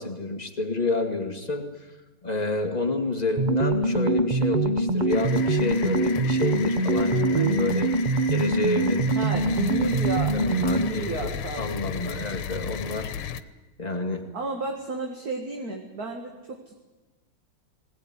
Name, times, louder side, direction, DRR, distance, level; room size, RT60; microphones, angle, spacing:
voice 1, 0.0-1.9 2.2-7.9 8.3-9.3 10.3-11.3 11.6-13.1 13.8-14.2, left 2 dB, 20° left, 3 dB, 2.2 m, -29 dB
sound 1, 3.4-11.0, right 2 dB, 70° right, 0.4 m, -24 dB
sound 2, 5.1-13.4, left 8 dB, 90° left, 1.8 m, -35 dB
voice 2, 9.1-12.3 14.3-16.8, right 3 dB, 45° right, 3 dB, 2.3 m, -33 dB
20.5 x 18.0 x 9.8 m, 1.2 s
omnidirectional pair, 2.3 m